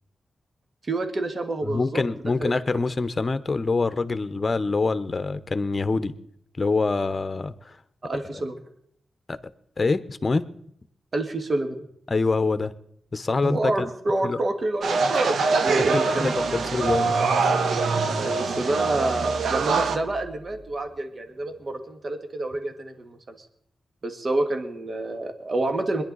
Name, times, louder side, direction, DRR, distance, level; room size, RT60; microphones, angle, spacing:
voice 1, 0.9-2.0 2.4-2.8 8.0-8.6 11.1-11.9 13.4-16.7 18.2-23.4 24.0-26.0, right 2 dB, 45° right, 6 dB, 1.8 m, -28 dB
voice 2, 1.6-6.1 6.6-7.8 9.3-9.4 9.8-10.5 12.1-12.7 13.1-13.9 14.2-14.4 15.8-17.2, left 3 dB, 40° left, 13 dB, 0.9 m, -25 dB
sound 1, 14.8-20.0, right 4 dB, 80° right, 1.0 m, -24 dB
Car / Engine starting, 15.1-15.2 15.5-20.8, right 2 dB, 5° right, 1.0 m, -36 dB
22.0 x 10.5 x 4.1 m, 0.70 s
cardioid pair, 60°, 0 cm